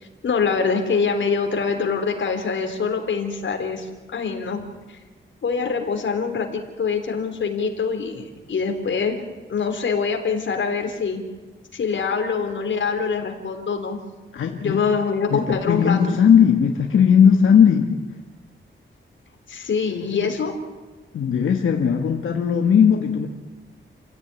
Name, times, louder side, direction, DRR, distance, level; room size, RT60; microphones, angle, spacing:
voice 1, 0.2-4.6 4.9-5.0 5.4-11.2 11.7-14.0 14.6-16.2 17.8-17.9 19.5-20.6 23.0-23.3, left 5 dB, 65° left, 4 dB, 3.8 m, -24 dB
voice 2, 14.3-14.8 15.3-17.9 21.1-23.3, left 7 dB, 90° left, 3 dB, 1.8 m, -17 dB
29.0 x 16.5 x 9.8 m, 1.3 s
wide cardioid pair, 155°, 21 cm